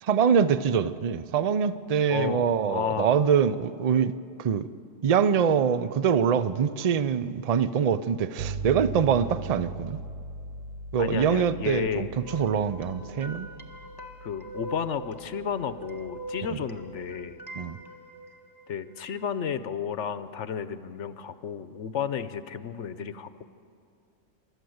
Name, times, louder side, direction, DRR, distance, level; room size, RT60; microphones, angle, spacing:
voice 1, 0.0-4.1 4.4-4.7 5.0-10.0 10.9-13.5 16.5-16.6 17.6-17.8, right 7 dB, 45° right, 14 dB, 0.5 m, -24 dB
voice 2, 2.1-3.2 11.0-12.1 14.2-17.4 18.7-23.4, left 7 dB, 65° left, 12 dB, 1.0 m, -32 dB
sound 1, 8.4-17.4, right 4 dB, 75° right, 1.3 m, -40 dB
sound 2, 12.2-19.3, equal, 20° left, 1.3 m, -43 dB
29.0 x 13.5 x 7.9 m, 2.5 s
omnidirectional pair, 1.4 m